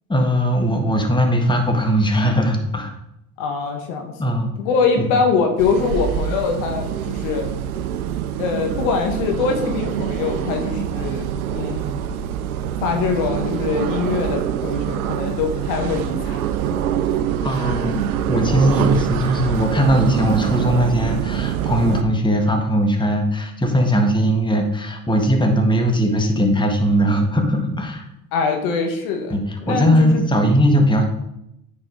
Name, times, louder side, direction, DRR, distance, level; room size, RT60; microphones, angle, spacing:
voice 1, 0.1-2.9 4.2-4.5 5.0-5.1 17.4-18.0 18.3-28.0 29.3-31.0, equal, 10° left, 3 dB, 1.6 m, -19 dB
voice 2, 3.4-4.1 4.6-7.5 8.4-11.3 11.5-12.0 12.8-16.4 16.9-17.0 28.3-29.3 29.7-30.2, left 5 dB, 70° left, 3 dB, 1.5 m, -23 dB
sound 1, 5.6-22.0, right 9 dB, 90° right, 0.6 m, -25 dB
9.3 x 4.7 x 4.9 m, 0.83 s
hypercardioid pair, 65°, 42 cm